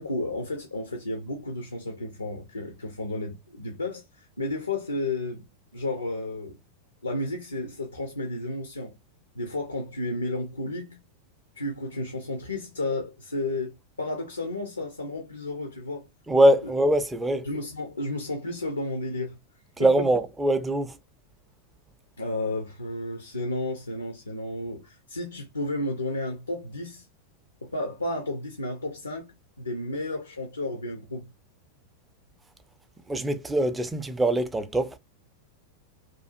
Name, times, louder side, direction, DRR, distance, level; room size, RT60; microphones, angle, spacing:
voice 1, 0.0-5.4 5.7-6.6 7.0-8.9 9.3-11.0 11.6-16.1 16.6-16.7 17.4-19.4 20.0-20.1 22.2-27.1 27.6-29.3 29.6-31.3, left 2 dB, 80° left, 0.5 m, -32 dB
voice 2, 16.3-17.5 19.8-21.0 33.1-35.0, right 1 dB, 10° right, 0.4 m, -23 dB
2.5 x 2.3 x 2.5 m
figure-of-eight pair, 90°, 0 cm